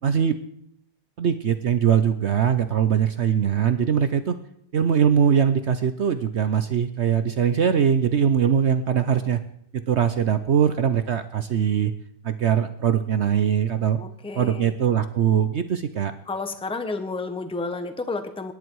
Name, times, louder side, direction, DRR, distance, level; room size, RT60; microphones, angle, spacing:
voice 1, 0.0-0.4 1.2-4.4 4.7-9.4 9.9-11.9 12.2-14.0 14.4-16.1, right 8 dB, 75° right, 10 dB, 0.6 m, -21 dB
voice 2, 14.0-14.8 16.3-18.5, left 3 dB, 5° left, 9 dB, 0.7 m, -31 dB
25.0 x 11.0 x 4.7 m, 0.73 s
omnidirectional pair, 2.1 m